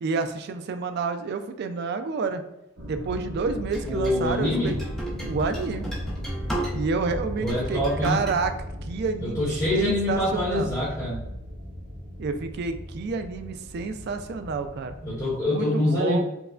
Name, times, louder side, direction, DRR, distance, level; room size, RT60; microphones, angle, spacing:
voice 1, 0.0-2.4 2.9-4.8 5.2-5.9 6.7-8.5 8.8-9.5 9.7-10.7 12.2-15.0 15.4-16.2, right 4 dB, 55° right, 8 dB, 0.3 m, -29 dB
sound 1, 2.8-15.4, equal, 75° right, 0.8 m, -36 dB
sound 2, 3.7-7.0 7.4-8.4, right 1 dB, ahead, 0.7 m, -35 dB
voice 2, 3.8-4.8 7.3-8.2 9.2-11.2 15.0-16.2, left 1 dB, 20° left, -8 dB, 1.0 m, -25 dB
4.6 x 2.1 x 2.4 m, 0.91 s
head